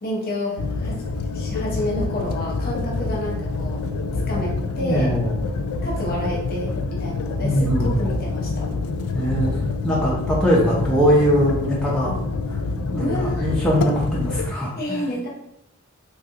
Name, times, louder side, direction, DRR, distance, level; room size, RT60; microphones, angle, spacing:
voice 1, 0.0-3.8 4.3-5.1 5.8-8.7 13.0-13.5 14.7-15.3, equal, 45° left, -2 dB, 0.8 m, -29 dB
sound 1, 0.6-14.5, left 3 dB, 80° left, 0.3 m, -26 dB
voice 2, 4.8-5.3 7.4-8.0 9.1-9.5 9.8-12.1 12.5-12.6 12.9-15.0, equal, 5° left, -6 dB, 0.5 m, -21 dB
3.1 x 2.4 x 2.8 m, 0.82 s
head